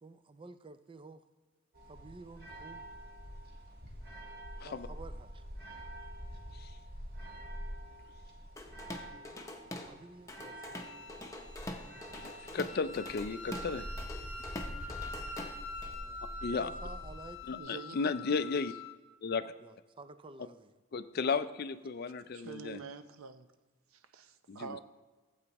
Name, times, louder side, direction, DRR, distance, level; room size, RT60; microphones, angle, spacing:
voice 1, 0.0-1.3 1.9-2.8 4.6-5.4 9.8-11.0 12.5-12.6 15.9-16.2 16.5-17.4 19.6-20.7, right 3 dB, 25° right, 12 dB, 0.4 m, -51 dB
sound 1, 1.7-17.6, equal, 45° right, 1.5 m, -46 dB
Drum kit / Drum, 8.6-9.9 10.3-15.9, left 1 dB, 15° left, 0.7 m, -44 dB
Wind instrument woodwind instrument, 10.8-19.0, left 3 dB, 90° left, 1.0 m, -46 dB
voice 2, 12.2-13.9 16.4-16.7 17.5-18.7 19.2-19.5 20.9-22.8 24.5-24.8, left 5 dB, 45° left, 13 dB, 0.4 m, -34 dB
voice 3, 17.5-18.7 22.3-23.5 23.9-24.8, right 5 dB, 80° right, 10 dB, 0.6 m, -47 dB
15.5 x 8.0 x 3.0 m, 1.2 s
head